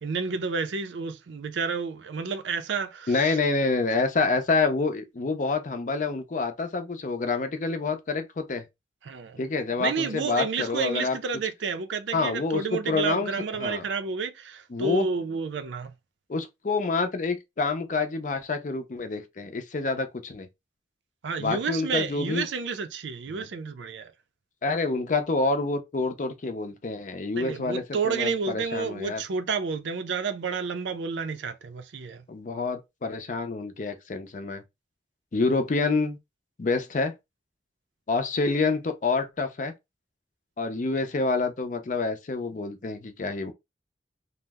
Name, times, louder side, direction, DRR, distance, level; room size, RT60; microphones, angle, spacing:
voice 1, 0.0-3.3 9.0-9.4 9.8-15.9 21.2-24.1 27.4-32.2, right 5 dB, 85° right, 0.5 m, -30 dB
voice 2, 3.1-8.6 9.4-11.2 12.1-13.8 14.7-15.1 16.3-20.5 21.4-22.5 23.4-23.5 24.6-29.2 32.3-34.6 35.3-36.2 36.6-37.1 38.1-39.7 40.6-43.5, left 3 dB, 45° left, 0.5 m, -27 dB
2.7 x 2.0 x 3.3 m
head